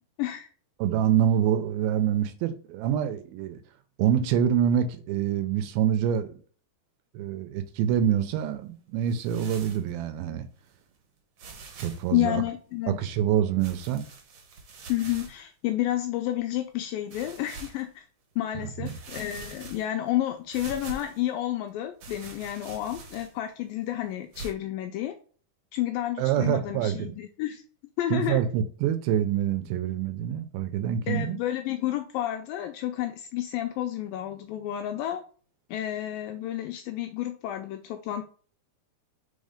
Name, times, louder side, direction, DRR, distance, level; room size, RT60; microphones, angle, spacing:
voice 1, 0.2-0.5 12.1-13.0 14.9-18.1 18.4-25.2 25.7-27.6 28.0-28.4 31.1-35.2 35.7-38.2, left 13 dB, 85° left, 2.0 m, -30 dB
voice 2, 0.8-3.6 4.0-6.4 7.1-10.5 11.8-12.4 12.9-14.0 18.5-19.0 26.2-27.1 28.1-31.4, right 9 dB, 80° right, 2.4 m, -26 dB
sound 1, 9.1-9.9 10.6-10.7 11.4-12.1 13.6-15.4 16.0-16.1 17.1-17.8 18.4-18.5 18.8-20.1 20.5-21.2 22.0-23.5 24.3-24.5, right 3 dB, 60° right, 1.7 m, -44 dB
5.4 x 3.9 x 5.0 m
omnidirectional pair, 4.5 m